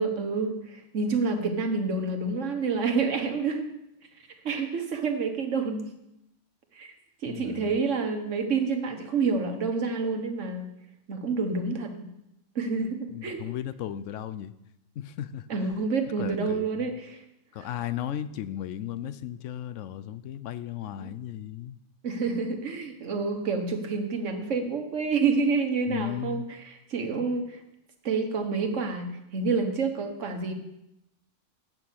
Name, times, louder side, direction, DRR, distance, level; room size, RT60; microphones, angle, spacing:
voice 1, 0.0-3.7 4.4-5.9 6.7-6.9 7.2-10.7 11.1-12.1 12.5-13.4 15.5-17.2 17.6-17.7 21.0-21.1 22.0-26.4 26.9-27.6 28.0-30.5, right 4 dB, 85° right, 5 dB, 1.6 m, -28 dB
voice 2, 7.3-7.8 13.1-14.5 15.0-15.5 16.2-16.9 17.5-21.8 25.9-26.5, left 11 dB, 85° left, 14 dB, 0.9 m, -35 dB
9.1 x 6.1 x 7.4 m, 0.85 s
omnidirectional pair, 1.2 m